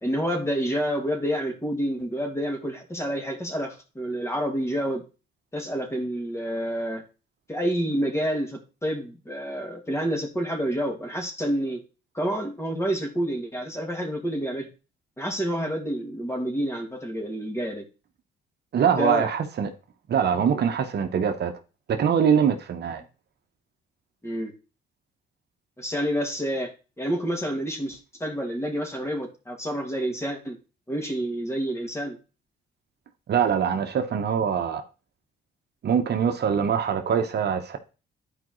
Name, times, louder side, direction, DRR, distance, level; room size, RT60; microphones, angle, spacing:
voice 1, 0.0-5.0 5.5-7.0 7.5-11.8 12.1-14.7 15.2-17.8 19.0-19.3 24.2-24.5 25.8-26.7 27.0-30.6 30.9-32.2, equal, 15° left, 2.2 m, -28 dB
voice 2, 18.7-19.7 20.1-21.5 21.9-23.0 33.3-34.8 35.8-37.8, right 7 dB, 55° right, 1.0 m, -23 dB
11.0 x 4.9 x 3.1 m
cardioid pair, 90°, 20 cm